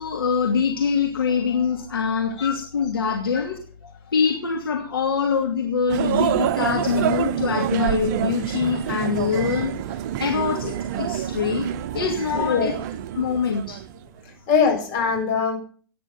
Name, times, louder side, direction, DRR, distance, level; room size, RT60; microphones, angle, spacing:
voice 1, 0.0-11.7 11.9-12.7 13.1-13.8, left 6 dB, 70° left, 2 dB, 2.6 m, -24 dB
sound 1, 5.9-14.2, right 11 dB, 45° right, 0.8 m, -27 dB
voice 2, 12.3-12.8 14.5-15.6, left 6 dB, 40° left, 2 dB, 7.7 m, -22 dB
16.5 x 10.5 x 6.0 m, 0.43 s
figure-of-eight pair, 105°, 12 cm